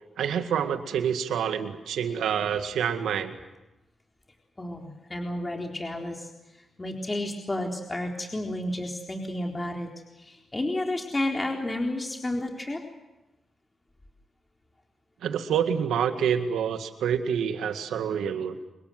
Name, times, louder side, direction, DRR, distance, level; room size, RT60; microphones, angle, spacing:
voice 1, 0.2-3.4 15.2-18.6, right 8 dB, 90° right, 7 dB, 2.0 m, -27 dB
voice 2, 4.6-6.3 6.8-9.9 10.2-12.8, left 1 dB, 25° left, 1 dB, 4.0 m, -31 dB
26.5 x 22.0 x 7.9 m, 0.99 s
cardioid pair, 65°, 0 cm